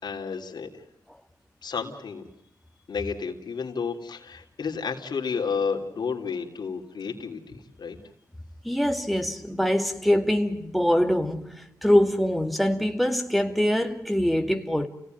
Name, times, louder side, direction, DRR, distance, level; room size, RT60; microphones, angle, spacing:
voice 1, 0.0-0.8 1.6-2.2 2.9-8.0, left 5 dB, 75° left, 3.2 m, -31 dB
voice 2, 8.6-11.5 11.8-14.9, equal, ahead, 2.3 m, -23 dB
29.5 x 17.5 x 9.3 m
cardioid pair, 65°, 7 cm